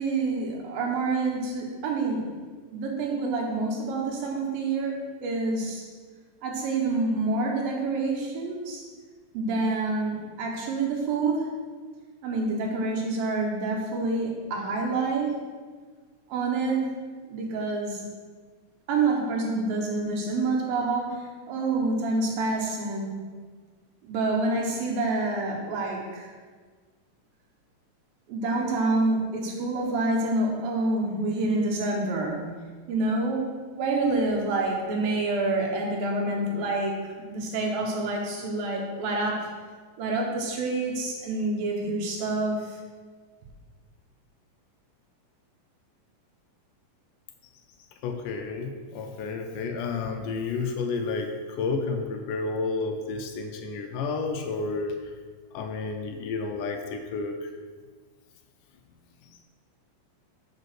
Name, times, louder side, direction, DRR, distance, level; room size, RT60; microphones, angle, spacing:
voice 1, 0.0-2.4 2.7-5.9 6.4-8.9 9.3-11.5 12.2-15.4 16.3-16.9 17.3-18.1 18.9-23.3 24.0-26.3 28.3-32.6 32.9-39.5 40.0-42.8, right 3 dB, 90° right, 0 dB, 3.1 m, -27 dB
voice 2, 48.0-55.1 55.5-57.5, left 4 dB, 80° left, 4 dB, 2.1 m, -31 dB
7.1 x 5.3 x 6.2 m, 1.5 s
omnidirectional pair, 4.0 m